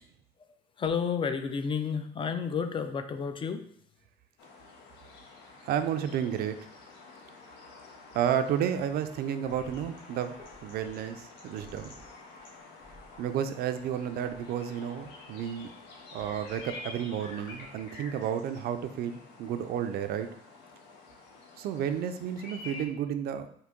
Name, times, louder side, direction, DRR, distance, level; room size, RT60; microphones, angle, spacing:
voice 1, 0.8-3.6, left 6 dB, 30° left, 8 dB, 0.3 m, -31 dB
sound 1, 4.4-22.9, left 3 dB, 90° left, 0.6 m, -49 dB
voice 2, 5.6-6.6 8.1-12.0 13.2-15.7 16.1-20.3 21.6-23.5, right 9 dB, 65° right, 9 dB, 0.4 m, -32 dB
sound 2, 9.4-18.6, left 1 dB, 55° left, 1.3 m, -56 dB
3.8 x 2.7 x 3.6 m, 0.65 s
cardioid pair, 110°, 17 cm